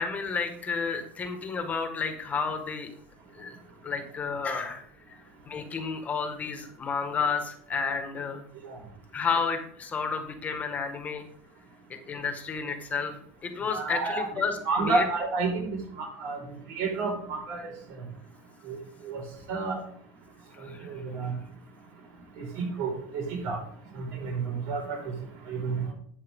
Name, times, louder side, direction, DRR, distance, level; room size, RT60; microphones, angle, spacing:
voice 1, 0.0-2.9 3.3-3.6 3.8-5.2 5.5-8.4 9.1-11.3 12.1-13.2 13.4-15.0 20.5-20.9, left 5 dB, 25° left, 6 dB, 1.9 m, -31 dB
voice 2, 13.7-14.3 14.6-16.4 16.7-17.7 18.7-18.8 19.0-19.2 19.5-19.8 20.9-21.3 22.4-23.6 23.9-25.1 25.5-25.8, right 4 dB, 65° right, 1 dB, 5.4 m, -30 dB
12.5 x 8.6 x 3.8 m, 0.62 s
supercardioid pair, 140°, 6 cm